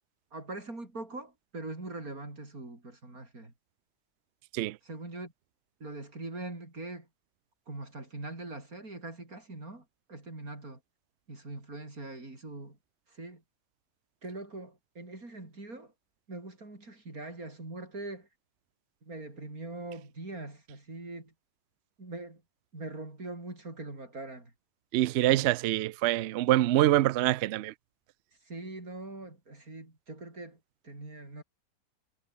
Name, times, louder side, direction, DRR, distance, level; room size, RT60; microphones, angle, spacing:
voice 1, 0.3-3.5 4.8-5.3 5.8-7.1 7.7-10.8 11.3-12.8 13.1-13.4 14.2-15.9 16.3-18.3 19.0-21.3 22.0-22.4 22.7-24.5 28.4-30.6 30.8-31.4, right 2 dB, 60° right, 6.5 m, -42 dB
voice 2, 24.9-27.7, right 15 dB, 85° right, 0.5 m, -25 dB
omnidirectional pair, 1.7 m